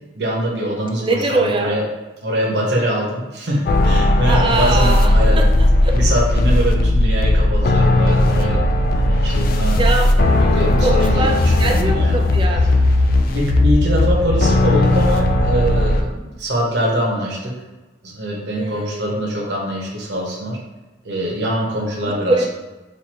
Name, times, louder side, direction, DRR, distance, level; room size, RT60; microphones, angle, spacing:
voice 1, 0.1-1.8 2.2-5.4 5.9-8.6 8.9-9.8 10.3-12.1 13.3-17.5 18.0-20.6 21.0-22.4, equal, 65° right, -3 dB, 0.9 m, -23 dB
voice 2, 1.0-1.8 4.3-5.7 9.7-10.2 10.8-12.7 18.5-19.1 22.0-22.4, right 2 dB, 30° right, 2 dB, 0.4 m, -22 dB
sound 1, 3.7-16.0, left 1 dB, 50° left, 0.3 m, -16 dB
4.3 x 2.6 x 2.9 m, 1.1 s
head